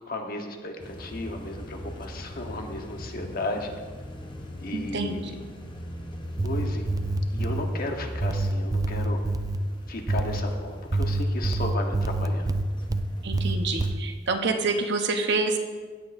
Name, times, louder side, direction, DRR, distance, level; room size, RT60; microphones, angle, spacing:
voice 1, 0.1-3.7 4.6-5.3 6.4-7.0 7.3-9.3 9.9-12.5, left 2 dB, 50° left, 3 dB, 1.1 m, -34 dB
sound 1, 0.8-14.0, equal, 25° left, 0.9 m, -40 dB
voice 2, 4.7-5.1 13.2-15.6, right 3 dB, 65° right, 5 dB, 0.9 m, -27 dB
sound 2, 6.2-7.7 8.2-9.6 10.1-10.4 10.9-13.0 13.3-13.9, right 2 dB, 20° right, 0.3 m, -26 dB
16.0 x 8.5 x 2.6 m, 1.5 s
head